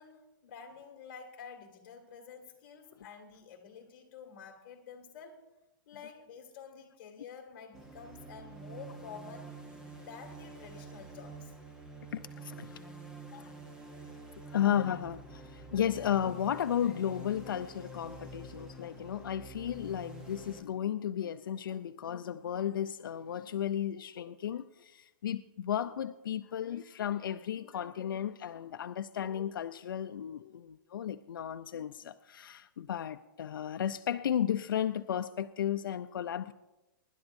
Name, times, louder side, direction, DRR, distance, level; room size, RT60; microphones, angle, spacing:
voice 1, 0.0-5.4 5.9-9.6 10.0-11.5, left 6 dB, 35° left, 2.1 m, -49 dB
sound 1, 7.7-20.6, right 3 dB, 5° right, 0.8 m, -48 dB
voice 2, 12.1-12.8 13.3-13.5 14.5-36.5, left 10 dB, 80° left, 0.5 m, -34 dB
24.0 x 11.5 x 2.6 m
hypercardioid pair, 175°, 11 cm